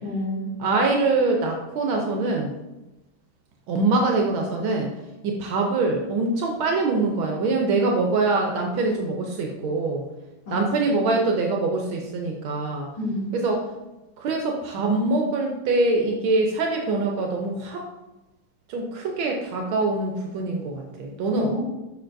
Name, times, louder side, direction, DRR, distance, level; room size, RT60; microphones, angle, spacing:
voice 1, 0.0-0.5 10.5-10.9 13.0-13.4 21.3-21.6, left 1 dB, 65° left, -11 dB, 2.6 m, -29 dB
voice 2, 0.6-2.5 3.7-4.9 5.2-10.0 10.5-12.9 13.3-13.6 14.2-17.9 18.7-21.6, right 3 dB, 75° right, 1 dB, 1.5 m, -24 dB
6.8 x 5.8 x 2.5 m, 1.0 s
omnidirectional pair, 2.3 m